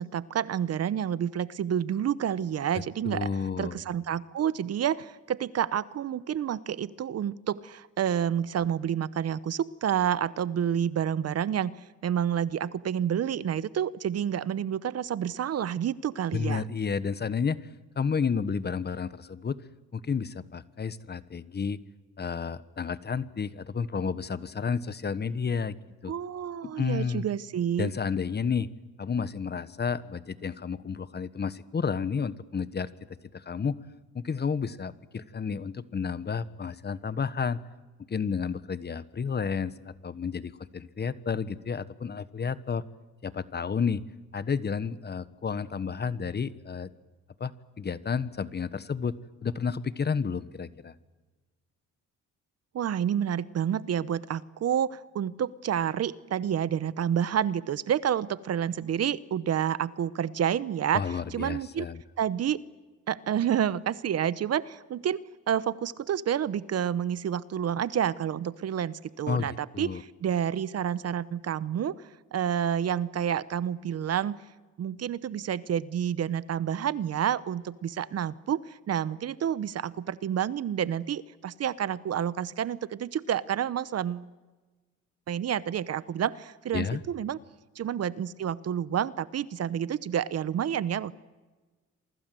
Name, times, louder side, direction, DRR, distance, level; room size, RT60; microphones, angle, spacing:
voice 1, 0.0-3.3 3.6-11.7 12.0-16.6 26.1-27.9 52.7-61.0 61.3-61.9 62.2-62.6 63.1-65.2 65.5-72.0 72.3-74.4 74.8-84.3 85.3-87.4 87.8-91.2, right 9 dB, 55° right, 18 dB, 0.9 m, -29 dB
voice 2, 2.7-3.8 16.3-17.7 18.0-19.6 19.9-21.8 22.2-25.8 26.0-26.1 26.6-27.3 27.8-28.7 29.0-32.9 33.3-33.8 34.1-37.6 38.1-42.8 43.2-44.0 44.3-46.9 47.4-49.1 49.4-50.9 60.9-62.0 69.3-70.0 86.7-87.0, left 6 dB, 35° left, 15 dB, 1.2 m, -31 dB
28.0 x 24.0 x 7.7 m, 1.2 s
cardioid pair, 90°, 30 cm